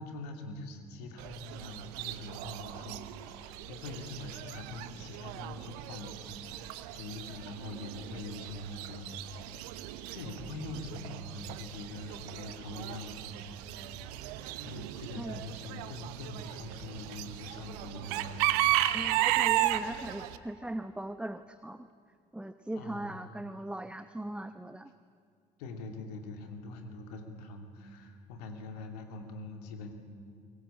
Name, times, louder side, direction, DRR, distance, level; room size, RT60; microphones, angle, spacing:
voice 1, 0.0-9.7 10.1-14.1 14.6-18.7 22.7-23.4 25.6-29.9, left 2 dB, 70° left, 5 dB, 2.7 m, -44 dB
Chicken rooster / Bird, 1.2-20.4, right 14 dB, 65° right, 1.0 m, -35 dB
voice 2, 18.9-21.9 22.3-24.9, right 1 dB, 5° right, 11 dB, 0.9 m, -39 dB
23.5 x 19.5 x 8.7 m, 2.4 s
figure-of-eight pair, 55°, 21 cm